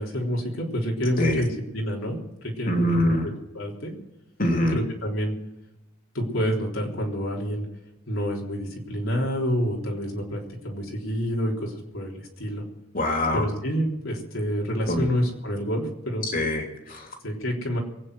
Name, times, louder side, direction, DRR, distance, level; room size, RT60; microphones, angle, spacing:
voice 1, 0.0-3.1 3.5-3.9 4.7-5.3 6.1-7.7 8.1-12.6 13.3-16.3 17.2-17.8, equal, 75° left, -2 dB, 3.7 m, -28 dB
voice 2, 2.7-3.3 4.4-4.8 12.9-13.5 14.9-15.1 16.3-17.1, left 1 dB, 40° left, 2 dB, 3.1 m, -24 dB
23.5 x 9.2 x 6.3 m, 0.93 s
head